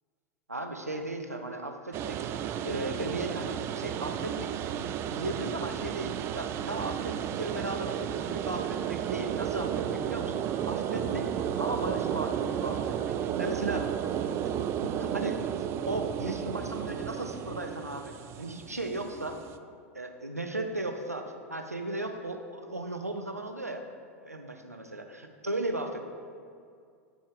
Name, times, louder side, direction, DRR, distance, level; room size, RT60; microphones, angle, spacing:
voice 1, 0.5-2.4 2.6-11.3 11.6-13.9 14.8-19.4 19.9-23.8 24.2-26.1, right 2 dB, 85° right, 5 dB, 0.6 m, -36 dB
sound 1, 1.9-19.6, right 9 dB, 30° right, 0.3 m, -33 dB
9.4 x 6.2 x 3.5 m, 2.2 s
figure-of-eight pair, 85°, 8 cm